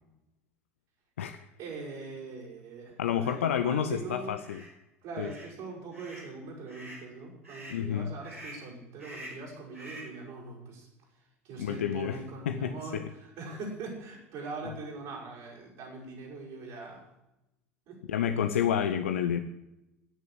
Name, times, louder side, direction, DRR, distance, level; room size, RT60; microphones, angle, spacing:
voice 1, 1.6-4.3 5.0-17.1 17.9-18.0, right 3 dB, 50° right, -5 dB, 6.0 m, -42 dB
voice 2, 3.0-4.6 5.2-5.3 7.7-8.1 11.6-12.2 12.5-13.0 18.1-19.4, left 9 dB, 70° left, 8 dB, 0.7 m, -29 dB
sound 1, 4.4-4.7 5.2-5.5 5.9-6.3 6.7-7.1 7.4-7.8 8.2-8.7 9.0-9.4 9.7-10.2, right 1 dB, 85° right, 6.1 m, -46 dB
16.5 x 6.8 x 8.5 m, 0.93 s
figure-of-eight pair, 75°, 7 cm